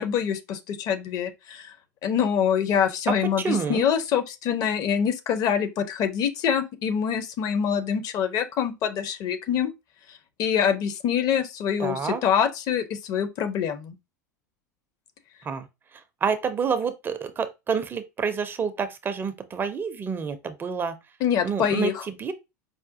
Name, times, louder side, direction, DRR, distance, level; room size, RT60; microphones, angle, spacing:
voice 1, 0.0-1.7 2.0-9.7 10.4-14.0 21.2-22.0, left 8 dB, 40° left, 0.5 m, -25 dB
voice 2, 3.1-3.8 11.8-12.2 15.4-15.7 15.9-21.0 21.4-22.3, right 6 dB, 20° right, 0.4 m, -28 dB
4.8 x 2.2 x 2.6 m
figure-of-eight pair, 80°, 9 cm